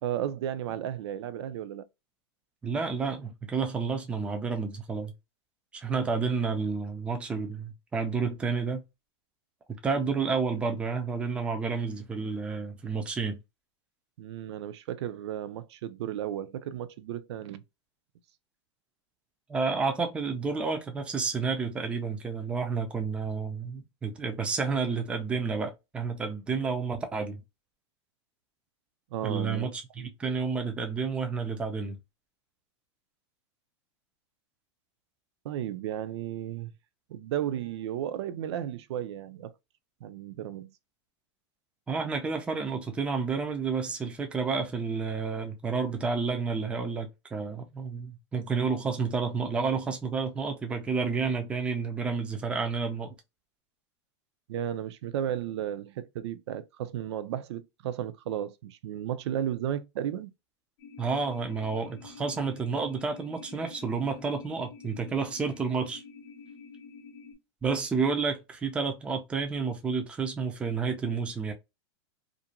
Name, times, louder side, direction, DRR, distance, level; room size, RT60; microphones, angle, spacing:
voice 1, 0.0-1.9 14.2-17.6 29.1-29.7 30.0-30.1 35.4-36.7 37.1-39.5 40.0-40.7 54.5-60.3, right 10 dB, 65° right, 0.5 m, -34 dB
voice 2, 2.6-5.1 5.7-8.8 9.8-13.4 19.5-27.4 29.2-32.0 41.9-53.1 61.0-66.0 67.6-71.5, right 4 dB, 5° right, 0.4 m, -30 dB
sound 1, 60.8-67.3, left 5 dB, 50° left, 0.8 m, -48 dB
2.5 x 2.1 x 2.8 m
supercardioid pair, 150°, 15 cm